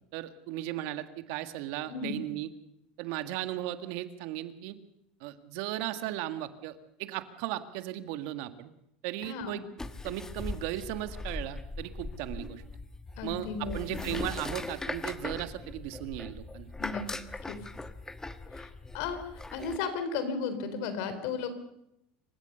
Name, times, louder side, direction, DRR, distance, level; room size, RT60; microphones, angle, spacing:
voice 1, 0.1-2.5 3.0-4.8 5.2-8.7 9.0-9.7 10.0-12.6 13.2-16.7, right 13 dB, 70° right, 10 dB, 1.7 m, -36 dB
voice 2, 1.9-2.2 9.2-9.5 12.4-12.5 13.2-14.2 16.8-17.0 17.5-17.6 18.5-18.7 18.9-19.2 19.5-21.5, left 5 dB, 70° left, 10 dB, 3.8 m, -34 dB
sound 1, 9.8-19.8, left 2 dB, 10° left, 1.3 m, -40 dB
27.0 x 15.5 x 6.8 m, 0.82 s
supercardioid pair, 105°, 5 cm